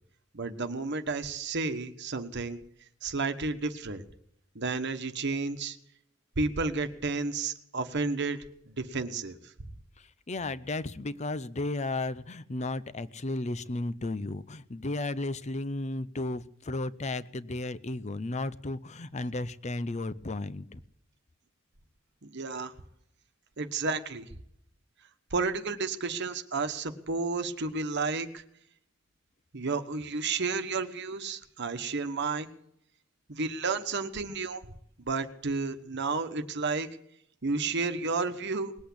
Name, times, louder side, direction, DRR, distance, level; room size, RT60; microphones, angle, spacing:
voice 1, 0.3-2.6 3.0-4.0 4.5-5.8 6.4-8.4 8.7-9.4 22.2-22.7 23.6-24.3 25.3-28.4 29.5-32.5 33.3-34.7 35.1-36.9 37.4-38.7, right 4 dB, 60° right, 8 dB, 1.2 m, -31 dB
voice 2, 10.0-20.8, left 2 dB, 35° left, 16 dB, 0.7 m, -34 dB
20.0 x 8.3 x 8.4 m, 0.74 s
head